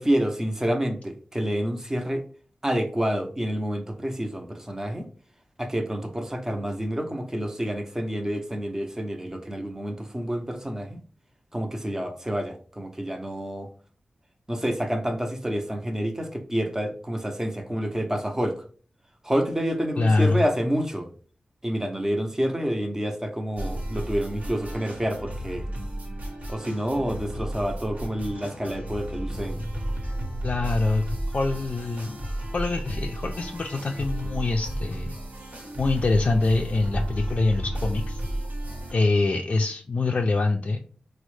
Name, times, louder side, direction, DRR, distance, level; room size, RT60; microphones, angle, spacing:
voice 1, 0.0-2.2 2.6-5.1 5.6-11.0 11.5-13.7 14.5-18.6 19.2-21.1 21.6-25.7 26.5-29.7, equal, 15° right, 5 dB, 0.6 m, -28 dB
voice 2, 20.0-20.4 30.4-32.2 32.5-35.2 35.8-38.2 38.9-40.8, left 3 dB, 50° left, 2 dB, 0.3 m, -24 dB
sound 1, 23.6-38.9, right 1 dB, 70° right, 1.1 m, -33 dB
4.0 x 2.1 x 3.1 m, 0.43 s
cardioid pair, 65°, 3 cm